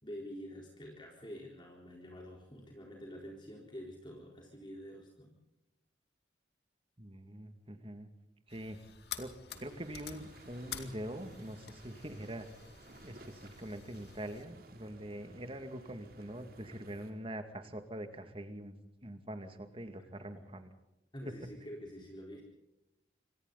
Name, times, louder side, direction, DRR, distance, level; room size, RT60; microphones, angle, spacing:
voice 1, 0.0-5.3 20.3-20.4 21.1-22.4, equal, 25° left, -1 dB, 4.2 m, -47 dB
voice 2, 7.0-8.1 8.5-8.8 9.2-12.5 13.0-18.8 19.0-20.7 21.3-21.4, right 1 dB, 30° right, 7 dB, 2.3 m, -44 dB
sound 1, 8.5-14.4, left 9 dB, 60° left, 2.3 m, -49 dB
sound 2, 9.5-17.1, right 1 dB, 50° right, 3.3 m, -57 dB
28.0 x 25.5 x 4.1 m, 0.91 s
head